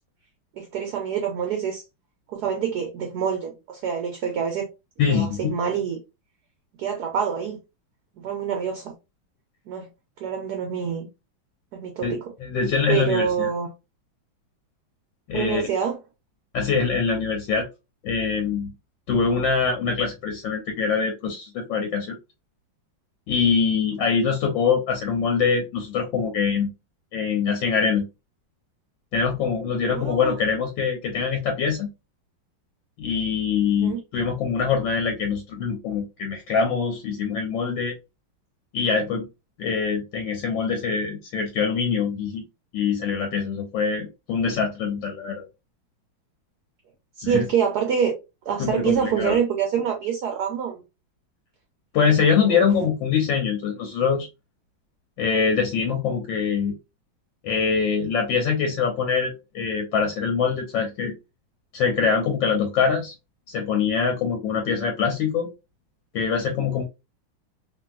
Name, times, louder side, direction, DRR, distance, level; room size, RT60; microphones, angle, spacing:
voice 1, 0.6-1.8 2.3-4.7 5.0-6.0 6.8-7.6 8.2-8.9 9.7-9.9 10.2-11.1 11.7-12.2 12.9-13.7 15.3-16.0 29.9-30.4 33.8-34.0 47.2-48.1 48.4-50.8 52.5-52.7, right 7 dB, 70° right, 1.0 m, -26 dB
voice 2, 5.0-5.5 12.0-13.5 15.3-15.6 16.5-17.7 18.0-18.7 19.1-22.1 23.3-26.7 27.1-28.0 29.1-31.9 33.0-38.0 38.7-39.3 39.6-42.4 42.7-45.4 47.2-47.4 48.6-49.4 51.9-54.3 55.2-56.7 57.4-61.1 61.7-63.1 63.5-65.5 66.1-66.8, left 6 dB, 75° left, 1.4 m, -24 dB
3.0 x 2.6 x 2.3 m
omnidirectional pair, 2.2 m